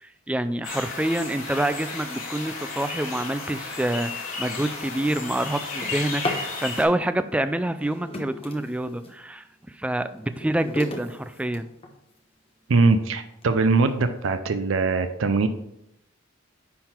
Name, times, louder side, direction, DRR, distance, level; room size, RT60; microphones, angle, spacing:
voice 1, 0.3-9.4 9.8-11.7, right 1 dB, 5° right, 11 dB, 0.3 m, -27 dB
sound 1, 0.6-6.8, left 3 dB, 80° left, 2.0 m, -34 dB
Drawer open or close, 4.7-6.5 7.6-9.2 9.7-12.2 12.8-12.9 13.4-13.5 13.9-14.3, left 2 dB, 30° left, 1.0 m, -36 dB
voice 2, 12.7-15.5, right 3 dB, 70° right, 9 dB, 0.5 m, -21 dB
10.0 x 3.9 x 4.4 m, 0.81 s
head